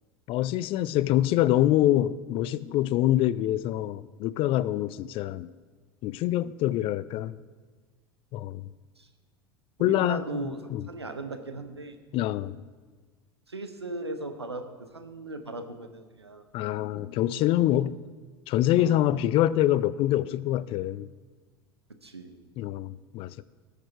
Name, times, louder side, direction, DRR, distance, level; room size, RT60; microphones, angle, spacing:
voice 1, 0.3-5.5 6.0-7.4 8.3-8.6 9.8-10.4 10.7-10.9 12.1-12.6 16.5-18.0 18.5-21.1 22.6-23.4, left 13 dB, 45° left, 18 dB, 0.4 m, -25 dB
voice 2, 9.8-12.0 13.5-16.4 18.8-19.0 22.0-22.5, right 2 dB, 90° right, 7 dB, 0.9 m, -38 dB
18.5 x 6.6 x 4.5 m, 1.4 s
figure-of-eight pair, 75°, 13 cm